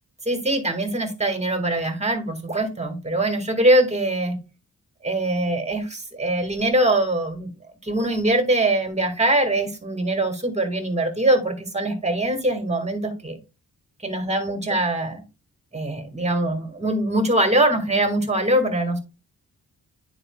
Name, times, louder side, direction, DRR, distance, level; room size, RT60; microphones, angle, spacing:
voice 1, 0.3-4.4 5.0-7.5 7.8-13.4 14.0-15.2 15.7-19.0, right 1 dB, 20° right, 5 dB, 1.9 m, -22 dB
9.8 x 4.8 x 2.4 m, 0.29 s
wide cardioid pair, 100°, 35 cm